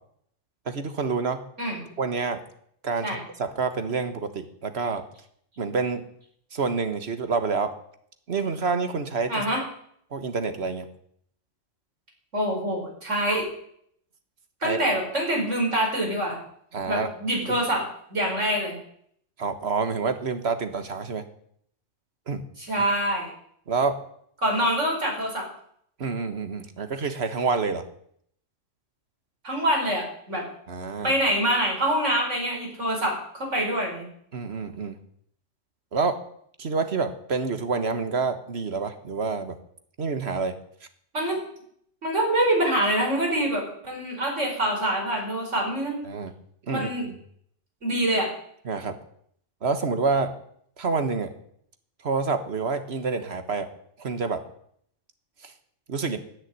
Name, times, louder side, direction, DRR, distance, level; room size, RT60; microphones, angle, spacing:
voice 1, 0.6-1.4 2.0-2.4 2.8-5.0 5.6-6.0 6.5-7.7 8.3-9.4 10.1-10.9 14.6-14.8 16.7-17.1 17.5-17.6 19.4-21.2 22.3-22.4 22.8-22.9 23.7-23.9 26.0-27.8 30.7-31.1 34.3-35.0 35.9-36.2 36.6-39.5 40.0-40.6 46.0-46.3 46.7-47.2 48.6-49.0 49.6-50.3 50.8-51.3 52.0-53.7 54.0-54.4 55.4-55.5 55.9-56.2, right 4 dB, 60° right, 9 dB, 1.7 m, -27 dB
voice 2, 9.3-9.6 12.3-13.5 14.6-16.4 16.9-17.9 18.1-18.8 22.6-23.3 24.4-25.5 29.4-30.5 31.0-34.1 41.1-41.4 42.0-46.0 46.7-47.1 47.8-48.3, right 1 dB, 85° right, 0 dB, 5.3 m, -25 dB
11.5 x 10.0 x 9.7 m, 0.67 s
omnidirectional pair, 1.2 m